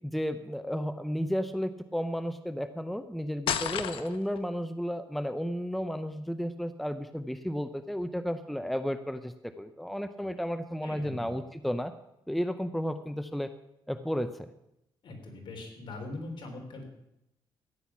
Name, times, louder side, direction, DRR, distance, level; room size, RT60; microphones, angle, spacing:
voice 1, 0.0-11.9 12.3-13.5 13.9-14.5, equal, ahead, 10 dB, 0.6 m, -33 dB
sound 1, 3.5-4.4, left 9 dB, 85° left, 0.9 m, -31 dB
voice 2, 10.8-11.3 15.0-16.8, left 2 dB, 65° left, 3 dB, 3.6 m, -41 dB
14.0 x 10.0 x 6.0 m, 0.84 s
cardioid pair, 105°, 9 cm